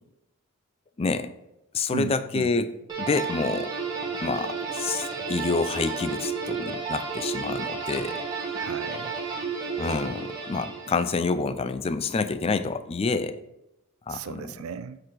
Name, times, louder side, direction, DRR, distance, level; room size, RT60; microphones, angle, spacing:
voice 1, 1.0-1.3 1.7-2.7 3.0-3.7 4.2-8.2 9.8-13.4 14.1-14.5, left 4 dB, 30° left, 12 dB, 0.4 m, -28 dB
voice 2, 1.9-2.5 8.5-9.1 14.1-15.0, right 6 dB, 85° right, 13 dB, 0.4 m, -35 dB
sound 1, 2.9-11.2, right 4 dB, 20° right, 1.5 m, -32 dB
7.6 x 4.1 x 4.5 m, 0.90 s
head